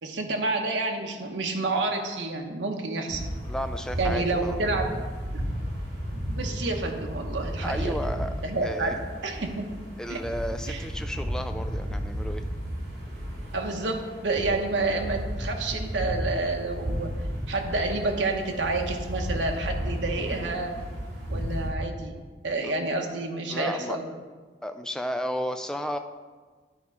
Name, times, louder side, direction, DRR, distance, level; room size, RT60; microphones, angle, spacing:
voice 1, 0.0-3.2 4.0-5.0 6.4-8.0 8.4-9.0 9.2-9.6 10.1-10.2 10.7-10.9 13.5-17.1 17.5-20.7 21.3-24.0, right 3 dB, 90° right, 3 dB, 0.9 m, -29 dB
sound 1, 3.1-21.7, equal, 55° right, 2.8 m, -33 dB
voice 2, 3.5-4.6 7.6-8.3 8.6-9.0 10.0-12.4 22.6-22.7 23.5-24.0 24.6-26.0, equal, 5° left, 7 dB, 0.3 m, -33 dB
11.0 x 4.2 x 4.8 m, 1.4 s
head